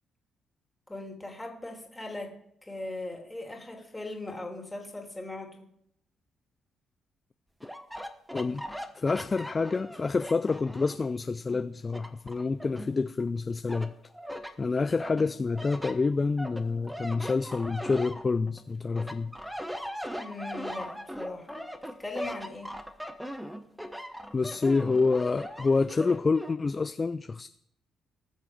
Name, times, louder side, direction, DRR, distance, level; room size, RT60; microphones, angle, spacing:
voice 1, 0.9-5.7 20.1-21.7 22.0-22.8, left 2 dB, 10° left, 2.8 m, -39 dB
sound 1, 7.6-11.1 11.5-13.3 13.7-14.5 15.0-18.6 18.9-26.5, equal, 5° right, 1.2 m, -40 dB
voice 2, 8.3-8.7 8.9-13.9 14.6-19.3 24.3-27.5, left 4 dB, 30° left, 0.4 m, -28 dB
19.0 x 6.5 x 4.9 m
cardioid pair, 90°, 0 cm